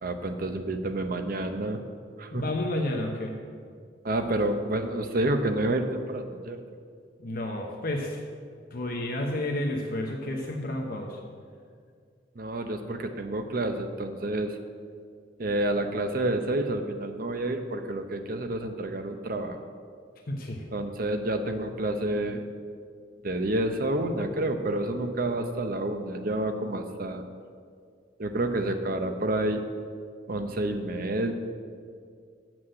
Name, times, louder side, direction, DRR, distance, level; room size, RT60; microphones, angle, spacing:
voice 1, 0.0-1.8 2.2-2.4 4.0-6.6 12.4-14.6 15.4-19.6 20.7-22.4 23.2-27.2 28.2-29.6 30.3-31.3, right 1 dB, 50° right, 6 dB, 0.7 m, -29 dB
voice 2, 2.3-3.4 7.2-8.2 8.7-11.2 20.3-20.6, left 1 dB, 50° left, 1 dB, 0.9 m, -31 dB
7.9 x 6.1 x 7.7 m, 2.2 s
head